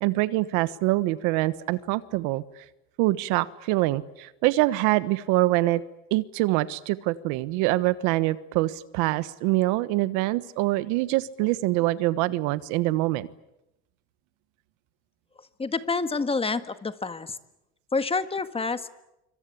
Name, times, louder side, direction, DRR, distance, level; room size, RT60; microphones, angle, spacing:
voice 1, 0.0-2.4 3.0-5.8 6.1-13.3, right 18 dB, 85° right, 16 dB, 1.3 m, -24 dB
voice 2, 15.6-17.4 17.9-18.9, left 4 dB, 20° left, 11 dB, 1.7 m, -28 dB
26.0 x 25.0 x 8.6 m, 0.89 s
supercardioid pair, 110°, 29 cm